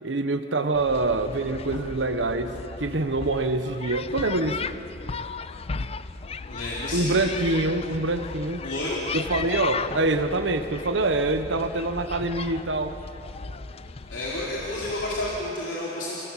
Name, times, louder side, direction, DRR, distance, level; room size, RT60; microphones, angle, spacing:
voice 1, 0.0-4.7 6.9-8.6 9.1-13.0, right 2 dB, 85° right, 8 dB, 1.1 m, -25 dB
sound 1, 0.7-15.5, left 4 dB, 35° left, 0.5 m, -36 dB
voice 2, 6.5-7.2 8.6-9.0 14.1-16.2, left 1 dB, 90° left, -6 dB, 3.8 m, -30 dB
29.5 x 18.0 x 7.4 m, 3.0 s
head